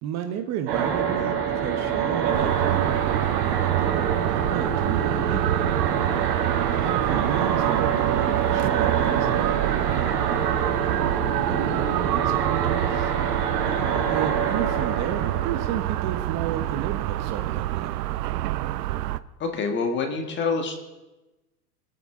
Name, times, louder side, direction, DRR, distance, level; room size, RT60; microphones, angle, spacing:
voice 1, 0.0-3.1 3.4-5.6 6.7-10.4 10.8-11.1 11.5-13.1 14.1-18.0, right 9 dB, 35° right, 7 dB, 1.1 m, -33 dB
sound 1, 0.7-16.6, right 6 dB, 50° right, 4.2 m, -26 dB
sound 2, 2.3-19.2, right 14 dB, 85° right, 0.7 m, -26 dB
voice 2, 19.4-20.8, left 4 dB, 25° left, 5 dB, 1.6 m, -26 dB
22.5 x 8.4 x 3.7 m, 1.1 s
supercardioid pair, 140°, 47 cm